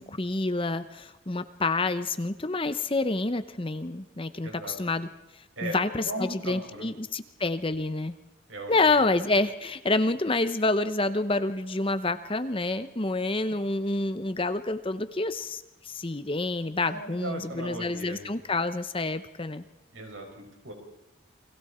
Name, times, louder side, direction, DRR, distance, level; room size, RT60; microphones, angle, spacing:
voice 1, 0.0-5.1 5.6-8.1 8.7-19.6, left 2 dB, 25° left, 11 dB, 0.8 m, -28 dB
voice 2, 4.4-4.8 5.6-6.9 8.5-9.1 16.8-18.3 19.9-20.7, right 1 dB, 70° right, 2 dB, 6.1 m, -38 dB
29.5 x 22.0 x 4.4 m, 1.0 s
head